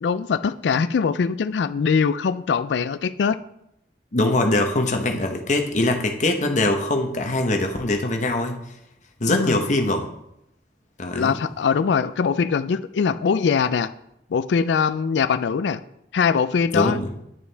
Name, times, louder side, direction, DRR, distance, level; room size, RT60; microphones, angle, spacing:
voice 1, 0.0-3.4 9.3-9.6 11.1-13.9 14.3-15.8 16.1-17.0, left 6 dB, 85° left, 14 dB, 0.4 m, -22 dB
voice 2, 4.1-8.6 9.2-10.1 11.0-11.4 16.7-17.1, left 2 dB, 45° left, 4 dB, 1.0 m, -22 dB
10.5 x 6.9 x 3.4 m, 0.81 s
head